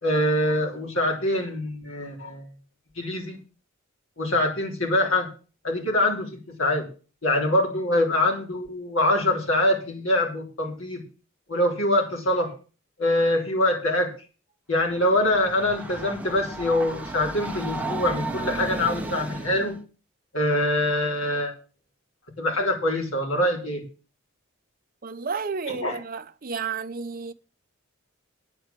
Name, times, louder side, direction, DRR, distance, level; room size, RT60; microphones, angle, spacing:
voice 1, 0.0-2.5 3.0-3.4 4.2-5.3 5.6-6.9 7.2-11.0 11.5-12.5 13.0-14.1 14.7-19.8 20.3-21.5 22.4-23.8 25.8-26.0, left 1 dB, 75° left, 3.8 m, -24 dB
Train, 14.9-19.8, right 2 dB, 5° right, 1.0 m, -34 dB
voice 2, 25.0-27.3, right 5 dB, 45° right, 0.7 m, -32 dB
9.1 x 7.9 x 7.6 m
head